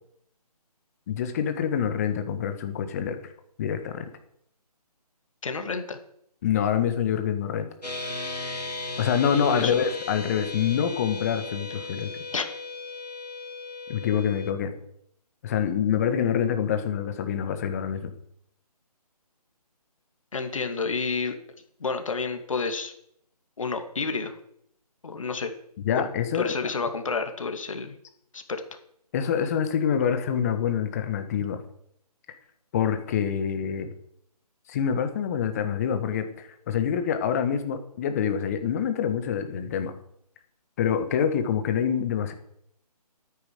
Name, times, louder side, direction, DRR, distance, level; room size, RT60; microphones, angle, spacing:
voice 1, 1.1-3.3 3.6-4.1 6.4-7.7 9.0-12.1 13.9-14.7 15.4-18.1 25.8-26.5 29.1-31.6 32.7-33.9 34.7-39.9 40.8-42.3, left 8 dB, 25° left, 8 dB, 1.4 m, -26 dB
voice 2, 5.4-6.0 9.3-9.8 12.3-12.5 20.3-21.4 21.8-22.9 23.6-24.3 25.0-25.5 25.9-26.1 26.3-27.9 28.3-28.6, left 4 dB, 55° left, 6 dB, 2.3 m, -30 dB
sound 1, 7.8-14.5, left 3 dB, 85° left, 2.9 m, -36 dB
13.0 x 9.6 x 6.7 m, 0.70 s
figure-of-eight pair, 150°, 20 cm